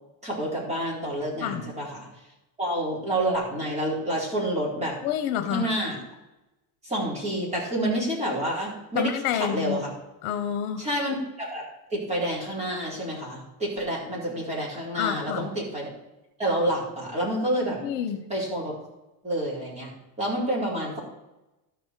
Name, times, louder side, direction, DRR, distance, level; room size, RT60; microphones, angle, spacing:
voice 1, 0.2-2.1 2.6-5.0 5.5-6.0 6.8-9.9 10.8-15.9 16.4-17.8 18.3-18.8 19.2-19.9 20.2-21.0, right 1 dB, 15° right, -6 dB, 4.0 m, -28 dB
voice 2, 5.0-5.7 8.9-9.8 10.2-10.9 15.0-15.5 17.8-18.2, left 10 dB, 70° left, 9 dB, 1.1 m, -28 dB
13.5 x 5.5 x 4.5 m, 0.98 s
cardioid pair, 150°, 43 cm